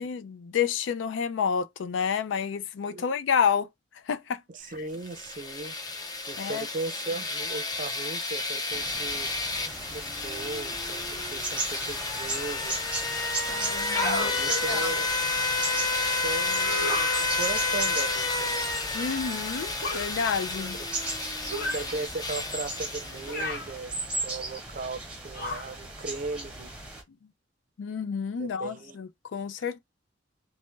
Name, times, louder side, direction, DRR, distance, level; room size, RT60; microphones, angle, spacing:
voice 1, 0.0-3.7 4.1-4.4 6.4-6.6 13.5-14.9 18.9-20.8 27.8-29.8, left 7 dB, 85° left, 0.4 m, -29 dB
voice 2, 4.5-5.7 6.3-9.3 9.9-12.8 14.2-15.1 16.1-18.7 20.7-20.9 21.7-23.9 24.2-26.7 28.4-29.0, right 3 dB, 45° right, 0.5 m, -37 dB
sound 1, 4.9-23.6, left 3 dB, 20° left, 0.4 m, -31 dB
sound 2, 8.7-27.0, right 2 dB, 5° right, 0.8 m, -37 dB
sound 3, 13.8-14.3 16.6-17.2 19.8-20.1 21.5-21.9 23.2-23.7 25.3-25.7, left 2 dB, 55° left, 1.7 m, -31 dB
3.2 x 2.0 x 3.1 m
head